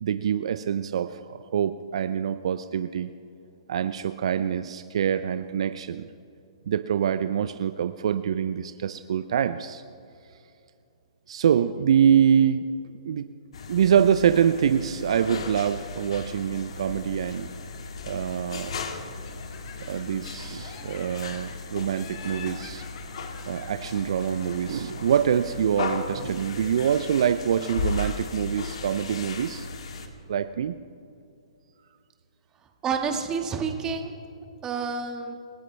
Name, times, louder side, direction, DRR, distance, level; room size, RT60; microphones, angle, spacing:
voice 1, 0.0-3.1 3.7-6.1 6.7-9.8 11.3-12.7 13.0-13.3 13.7-17.5 18.0-18.7 19.8-22.8 23.5-29.7 30.3-30.8, right 8 dB, 60° right, 11 dB, 0.6 m, -25 dB
sound 1, 13.5-30.1, left 4 dB, 65° left, 1.8 m, -36 dB
Laughter, 19.2-20.3 20.6-21.6 21.9-24.7, left 7 dB, 45° left, 2.2 m, -47 dB
voice 2, 32.8-34.2 34.6-35.3, right 5 dB, 20° right, 4 dB, 1.8 m, -29 dB
27.5 x 15.0 x 3.4 m, 2.6 s
hypercardioid pair, 125°, 3 cm